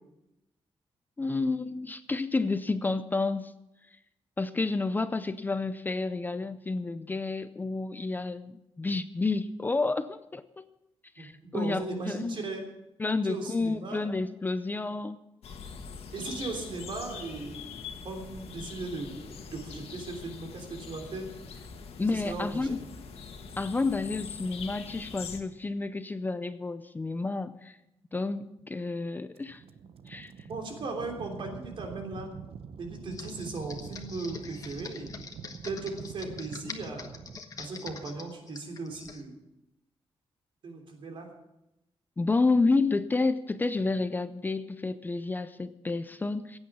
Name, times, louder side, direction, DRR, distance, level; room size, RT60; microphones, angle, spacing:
voice 1, 1.2-3.5 4.4-10.7 11.2-12.4 13.0-15.2 22.0-22.8 23.6-27.8 28.1-29.6 30.1-30.3 42.2-46.6, left 3 dB, 20° left, 12 dB, 0.5 m, -30 dB
voice 2, 11.2-12.7 13.2-14.1 16.1-17.6 18.0-19.2 19.5-21.3 22.1-22.7 30.5-32.4 32.8-35.1 35.6-37.1 37.6-39.4 40.6-41.3, right 3 dB, 60° right, 3 dB, 3.3 m, -37 dB
sound 1, 15.4-25.4, left 5 dB, 85° left, 1.8 m, -43 dB
sound 2, 29.4-37.4, right 7 dB, 75° right, 0.8 m, -45 dB
Computer keyboard, 33.1-39.2, left 4 dB, 35° left, 1.3 m, -44 dB
16.0 x 8.8 x 7.2 m, 0.90 s
wide cardioid pair, 165°, 10 cm